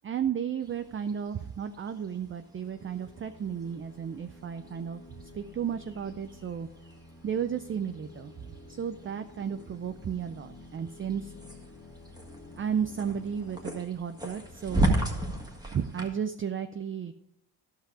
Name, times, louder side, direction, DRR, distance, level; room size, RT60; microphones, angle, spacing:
voice 1, 0.0-5.0 5.3-6.7 7.2-11.3 12.6-15.2 15.7-17.1, right 8 dB, 30° right, 9 dB, 0.4 m, -33 dB
sound 1, 0.6-16.1, right 1 dB, 10° right, 1.6 m, -37 dB
sound 2, 2.6-13.7, left 2 dB, 25° left, 2.1 m, -51 dB
12.5 x 5.7 x 4.8 m, 0.81 s
cardioid pair, 90°, 49 cm